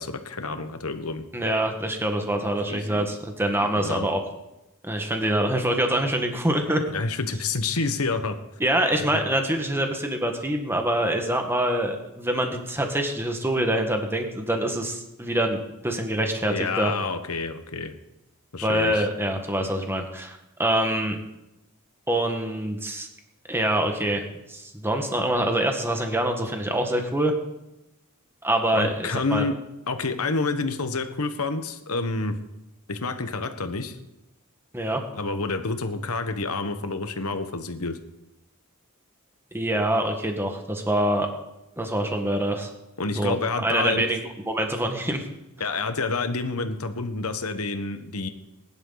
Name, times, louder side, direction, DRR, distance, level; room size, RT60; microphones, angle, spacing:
voice 1, 0.0-1.2 2.7-3.1 3.6-4.1 6.9-8.4 16.5-17.9 18.5-19.0 28.7-29.6 29.9-32.4 32.9-34.0 35.1-38.0 43.0-44.1 45.6-48.3, left 3 dB, 75° left, 8 dB, 1.4 m, -28 dB
voice 2, 1.3-4.2 4.8-6.8 8.6-16.9 18.6-21.2 22.1-23.1 23.5-24.2 24.5-27.3 28.4-29.4 34.7-35.0 39.5-41.3 41.8-42.7 43.1-43.3 43.6-44.2 44.5-45.3, right 1 dB, 10° right, 4 dB, 1.6 m, -25 dB
21.0 x 11.0 x 4.1 m, 0.93 s
head